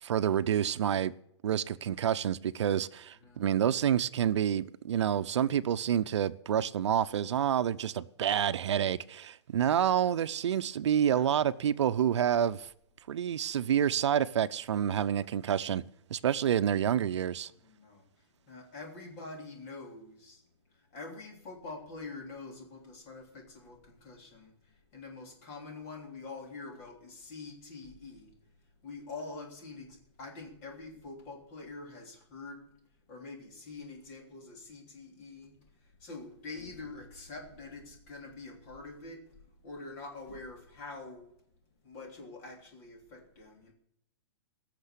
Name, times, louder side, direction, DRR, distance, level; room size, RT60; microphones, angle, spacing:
voice 1, 0.0-1.1 1.4-12.7 13.1-15.8 16.1-17.5, right 9 dB, 80° right, 0.7 m, -28 dB
voice 2, 11.0-11.4 17.5-20.4 20.7-32.7 33.1-41.3 41.8-43.7, left 3 dB, 30° left, 3.4 m, -46 dB
18.0 x 6.7 x 8.3 m
hypercardioid pair, 170°, 15 cm